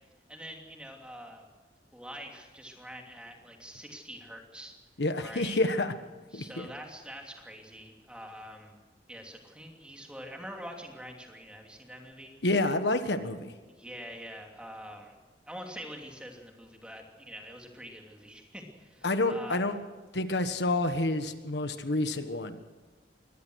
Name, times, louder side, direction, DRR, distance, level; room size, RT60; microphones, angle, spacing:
voice 1, 0.3-1.4 1.9-4.7 5.2-5.6 6.3-8.8 9.1-12.3 13.8-15.2 15.5-19.6, equal, 5° right, 2 dB, 3.0 m, -45 dB
voice 2, 5.0-5.9 6.3-6.7 12.4-13.5 19.0-19.8 20.1-22.7, left 2 dB, 80° left, 9 dB, 1.4 m, -28 dB
23.5 x 18.5 x 6.4 m, 1.3 s
head